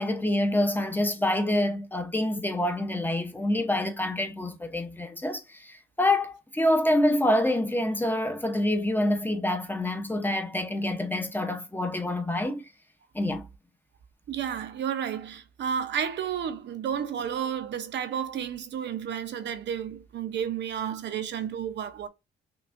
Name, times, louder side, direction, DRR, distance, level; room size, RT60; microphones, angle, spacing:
voice 1, 0.0-12.6 13.1-13.4, left 1 dB, 10° left, 0.7 m, -26 dB
voice 2, 14.3-22.1, right 8 dB, 65° right, 0.6 m, -31 dB
5.8 x 2.3 x 2.5 m
cardioid pair, 90°, 20 cm